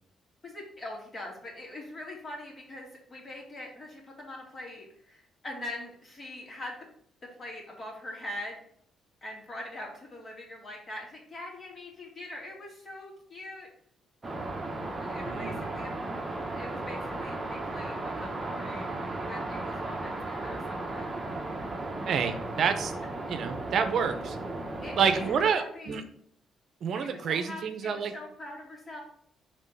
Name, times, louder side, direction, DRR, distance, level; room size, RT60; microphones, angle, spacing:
voice 1, 0.4-6.8 7.4-8.6 9.2-13.7 15.0-15.9 16.5-18.9 19.2-21.1 24.8-26.0 27.0-29.0, left 1 dB, 35° left, -1 dB, 2.3 m, -43 dB
sound 1, 14.2-25.4, right 2 dB, 25° right, 1.0 m, -35 dB
voice 2, 15.2-15.6 22.1-22.9 23.3-24.4 25.0-26.0 26.8-28.1, right 6 dB, 65° right, 8 dB, 0.6 m, -28 dB
5.3 x 3.4 x 5.3 m, 0.65 s
cardioid pair, 90°, 0 cm